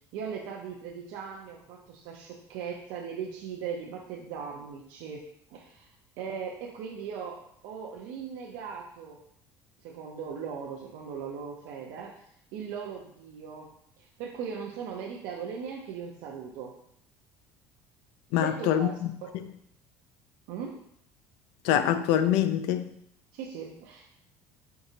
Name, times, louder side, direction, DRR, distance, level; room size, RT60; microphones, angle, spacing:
voice 1, 0.1-5.9 6.2-9.2 9.8-13.7 14.0-16.7 18.4-19.3 20.5-20.8 23.3-24.1, right 6 dB, 70° right, -2 dB, 0.6 m, -39 dB
voice 2, 18.3-19.4 21.6-22.9, left 10 dB, 75° left, 10 dB, 0.4 m, -25 dB
4.7 x 3.8 x 2.7 m, 0.71 s
cardioid pair, 170°, 8 cm